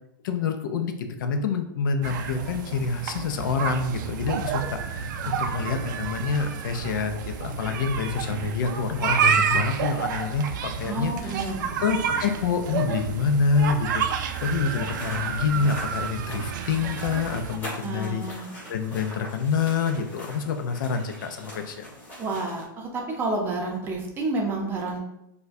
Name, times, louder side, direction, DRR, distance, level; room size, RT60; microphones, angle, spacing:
voice 1, 0.2-11.5 11.8-18.2 18.7-21.9, left 5 dB, 70° left, 6 dB, 0.5 m, -27 dB
sound 1, 2.0-17.6, right 7 dB, 65° right, 0.4 m, -29 dB
voice 2, 10.8-11.6 17.8-18.5 22.2-25.0, right 2 dB, 20° right, 0 dB, 0.6 m, -29 dB
sound 2, 13.9-22.6, equal, 15° left, 1.4 m, -42 dB
4.5 x 2.2 x 2.6 m, 0.84 s
supercardioid pair, 145°, 11 cm